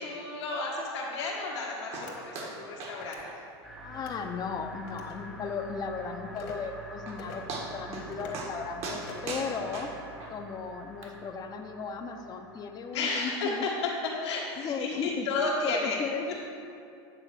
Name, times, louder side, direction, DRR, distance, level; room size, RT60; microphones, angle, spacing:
voice 1, 0.0-3.4 12.9-16.0 16.3-16.4, left 3 dB, 90° left, -4 dB, 1.8 m, -32 dB
sound 1, 1.9-2.1 2.3-2.5 2.8-3.0 3.2-3.3 3.8-3.9 4.3-4.4 4.8-4.9 6.6-6.7 7.1-7.2 7.5-8.1 8.3-8.5 8.8-10.3 11.0-11.1, right 3 dB, 50° right, 1.5 m, -38 dB
sound 2, 2.0-2.2 2.9-3.2 3.9-4.2 4.9-5.2 6.3-6.6 7.2-7.4 8.1-8.4 9.0-9.4, left 5 dB, 65° left, 1.6 m, -46 dB
sound 3, 3.6-13.1, right 1 dB, ahead, 0.8 m, -47 dB
voice 2, 3.8-9.9 10.3-13.7 14.6-15.3 15.6-16.3, left 5 dB, 30° left, 5 dB, 0.7 m, -36 dB
9.0 x 3.8 x 6.2 m, 2.5 s
supercardioid pair, 125°, 14 cm